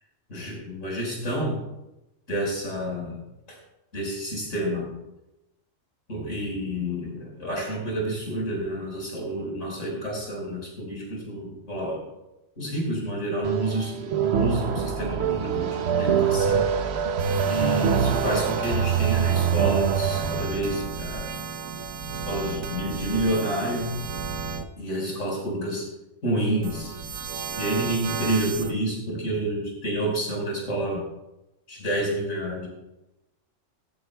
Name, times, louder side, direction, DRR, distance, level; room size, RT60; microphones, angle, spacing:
voice 1, 0.3-1.6 2.3-3.2 3.5-3.6 3.9-4.9 6.1-12.1 12.6-16.7 17.4-21.3 22.2-23.9 24.8-25.9 26.2-26.9 27.6-31.0 31.7-32.7, right 1 dB, 75° left, -3 dB, 5.3 m, -29 dB
sound 1, 13.4-20.4, right 7 dB, 60° right, 1.0 m, -24 dB
sound 2, 17.2-24.6 26.6-28.7, right 5 dB, 85° right, 1.3 m, -34 dB
15.5 x 14.0 x 2.3 m, 0.93 s
omnidirectional pair, 1.3 m